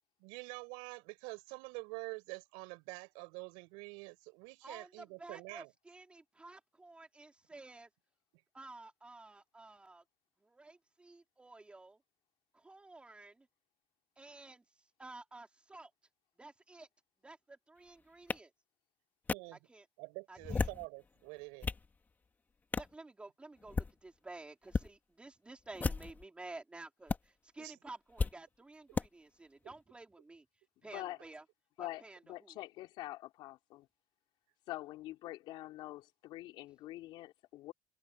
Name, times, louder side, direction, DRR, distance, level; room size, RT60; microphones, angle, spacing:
voice 1, 0.2-5.7 19.3-19.7 20.0-21.7 27.6-27.8 29.6-29.7, right 31 dB, 85° right, 7.4 m, -47 dB
voice 2, 4.6-7.9 8.5-10.0 10.4-12.0 12.5-13.5 14.2-14.6 15.0-15.9 16.4-16.9 17.2-18.5 19.5-19.9 20.3-20.7 22.7-30.4 30.8-31.4 31.8-32.6, right 2 dB, 15° right, 4.3 m, -52 dB
sound 1, 18.3-18.4 19.3-19.4 20.4-20.9 21.4-21.9 22.7-22.9 23.6-23.9 24.7-24.9 25.7-26.2 27.1-27.2 28.2-28.3 28.9-29.1, left 4 dB, 20° left, 2.6 m, -34 dB
voice 3, 31.8-33.9 34.7-37.7, left 16 dB, 65° left, 3.9 m, -45 dB
cardioid pair, 120°, 9 cm